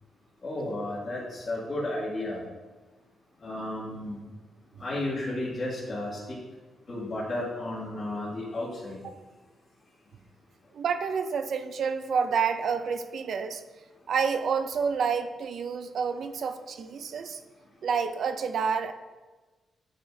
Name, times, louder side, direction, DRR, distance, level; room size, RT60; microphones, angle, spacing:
voice 1, 0.4-2.4 3.4-4.2 4.8-6.1 6.9-9.0, left 1 dB, 40° left, -10 dB, 2.0 m, -33 dB
voice 2, 10.7-13.6 14.1-17.4 17.8-18.9, right 6 dB, 65° right, 9 dB, 0.5 m, -29 dB
10.0 x 4.8 x 2.7 m, 1.3 s
cardioid pair, 105°, 0 cm